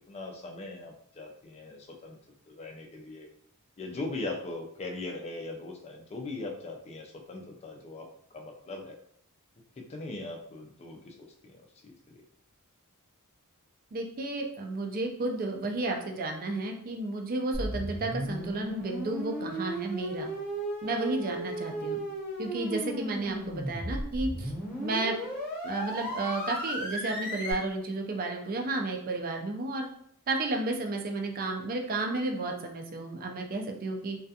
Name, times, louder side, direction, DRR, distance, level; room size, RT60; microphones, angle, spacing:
voice 1, 0.1-2.2 2.5-3.3 3.8-9.0 9.8-12.2, left 2 dB, 30° left, 2 dB, 0.3 m, -40 dB
voice 2, 13.9-20.3 20.8-22.0 22.4-24.5 24.8-25.2 25.6-29.9 30.3-34.2, right 2 dB, 40° right, 2 dB, 0.4 m, -32 dB
sound 1, 17.5-27.5, right 1 dB, 5° left, 0.9 m, -35 dB
2.3 x 2.2 x 2.7 m, 0.67 s
head